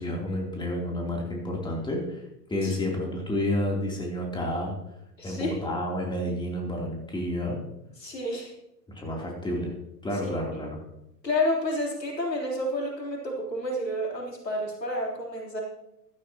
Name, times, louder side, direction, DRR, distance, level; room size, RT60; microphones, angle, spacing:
voice 1, 0.0-2.2 2.5-4.7 5.2-7.6 8.9-9.7 10.0-10.8, left 1 dB, 10° left, -1 dB, 3.0 m, -30 dB
voice 2, 5.2-5.6 8.0-8.5 10.2-10.3 11.2-15.6, left 1 dB, 80° left, -2 dB, 3.6 m, -30 dB
16.0 x 12.0 x 2.9 m, 0.85 s
figure-of-eight pair, 95°, 49 cm